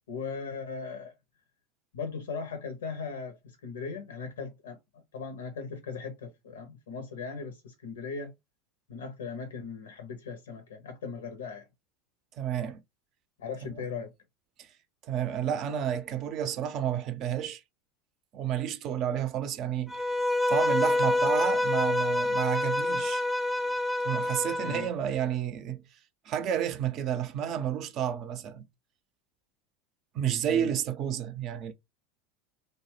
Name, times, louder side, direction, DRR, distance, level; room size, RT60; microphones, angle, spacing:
voice 1, 0.1-1.2 1.9-8.3 8.9-11.7 13.4-14.1 24.6-24.9 30.4-30.7, left 5 dB, 85° left, 0.6 m, -38 dB
voice 2, 12.4-12.8 14.6-14.7 15.0-17.6 18.3-20.1 20.5-23.2 24.0-25.9 26.3-28.7 30.1-31.7, right 9 dB, 50° right, 0.5 m, -31 dB
Bowed string instrument, 19.9-24.9, left 1 dB, ahead, 0.5 m, -27 dB
2.7 x 2.1 x 3.1 m
hypercardioid pair, 90°, 0 cm